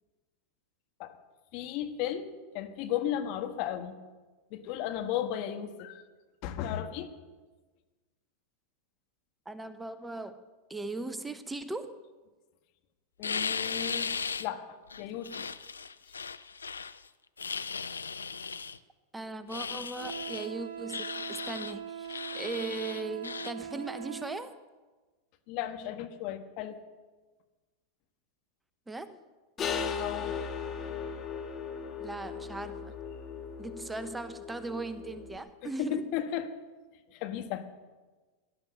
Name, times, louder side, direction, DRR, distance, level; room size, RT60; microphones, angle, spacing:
voice 1, 1.5-4.0 4.5-6.0 6.4-7.1 13.2-15.5 25.5-26.8 30.0-30.3 35.8-36.5 37.1-37.7, left 10 dB, 50° left, 7 dB, 1.6 m, -35 dB
voice 2, 9.5-12.0 19.1-24.5 28.9-29.2 32.0-33.0 33.6-36.1, right 3 dB, 10° right, 12 dB, 0.9 m, -38 dB
sound 1, 13.2-14.5 14.9-17.0 17.4-18.8 19.5-20.5 20.9-21.7 22.1-23.5, left 5 dB, 85° left, 0.5 m, -36 dB
Wind instrument woodwind instrument, 19.9-24.4, right 8 dB, 75° right, 1.4 m, -41 dB
sound 2, 29.6-35.4, left 6 dB, 30° left, 1.8 m, -37 dB
17.5 x 11.5 x 6.6 m, 1.3 s
figure-of-eight pair, 95°, 0 cm